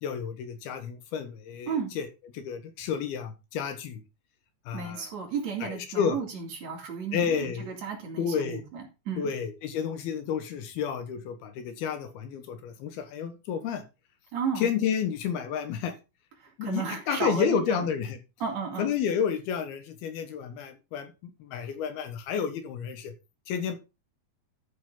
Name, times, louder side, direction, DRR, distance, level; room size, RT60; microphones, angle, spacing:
voice 1, 0.0-2.1 2.3-4.0 4.7-5.1 5.6-6.2 7.1-7.7 8.2-8.6 9.2-13.8 14.6-15.9 16.6-18.2 18.8-23.1 23.5-23.8, left 7 dB, 85° left, 8 dB, 3.3 m, -31 dB
voice 2, 4.7-9.4 14.3-14.7 16.4-17.9 18.4-18.9, right 6 dB, 50° right, 0 dB, 3.4 m, -33 dB
12.5 x 6.3 x 3.8 m, 0.28 s
omnidirectional pair, 4.3 m